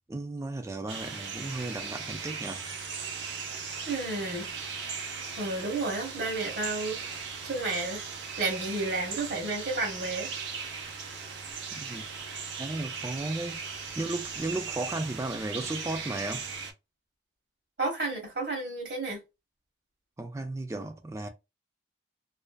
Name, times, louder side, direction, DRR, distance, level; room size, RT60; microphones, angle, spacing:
voice 1, 0.1-2.7 11.7-12.0 12.6-13.6 13.9-16.5 20.2-21.3, right 2 dB, 15° right, 0.3 m, -35 dB
sound 1, 0.9-16.7, right 5 dB, 85° right, 0.7 m, -38 dB
voice 2, 3.9-4.5 5.4-7.0 7.4-8.0 8.4-10.3 17.8-19.2, right 3 dB, 65° right, 0.9 m, -31 dB
2.5 x 2.3 x 2.2 m
head